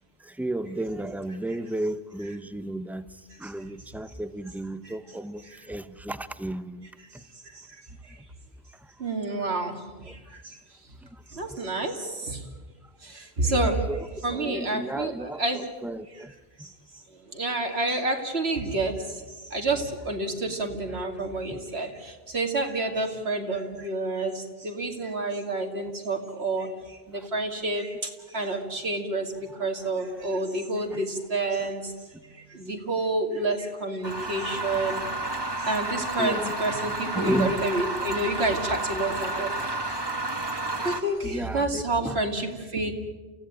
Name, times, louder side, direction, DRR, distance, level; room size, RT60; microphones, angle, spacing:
voice 1, 0.2-7.2 8.7-8.9 9.3-9.6 10.0-10.2 11.1-11.6 13.4-16.3 16.6-16.7 20.9-21.0 21.5-21.6 27.1-27.3 29.5-30.6 30.9-31.0 31.6-31.7 32.1-32.2 36.2-36.5 37.1-37.6 41.2-42.2, right 1 dB, ahead, 13 dB, 0.7 m, -34 dB
voice 2, 9.0-10.6 11.3-12.4 13.0-13.8 14.2-15.6 16.6-16.7 17.3-19.2 19.5-29.3 29.6-31.9 32.3-35.0 35.7-39.8 40.8-42.9, right 2 dB, 75° right, 4 dB, 2.7 m, -29 dB
sound 1, 34.0-41.0, right 2 dB, 25° right, 1.6 m, -31 dB
28.5 x 16.0 x 9.1 m, 1.3 s
omnidirectional pair, 1.1 m